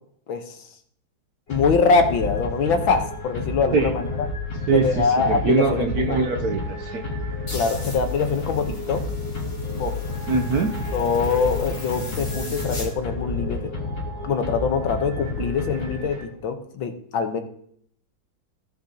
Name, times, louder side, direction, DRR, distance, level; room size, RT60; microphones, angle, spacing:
voice 1, 0.3-0.6 1.5-4.3 4.7-6.2 7.5-9.0 9.7-10.0 10.9-13.7 14.2-17.4, left 5 dB, 70° left, 6 dB, 1.8 m, -23 dB
sound 1, 1.5-16.6, left 3 dB, 55° left, 3.8 m, -30 dB
voice 2, 4.7-7.0 10.3-10.7, right 5 dB, 60° right, 4 dB, 1.0 m, -22 dB
sound 2, 7.5-12.9, left 1 dB, 30° left, 3.5 m, -39 dB
17.5 x 6.2 x 2.9 m, 0.64 s
omnidirectional pair, 2.3 m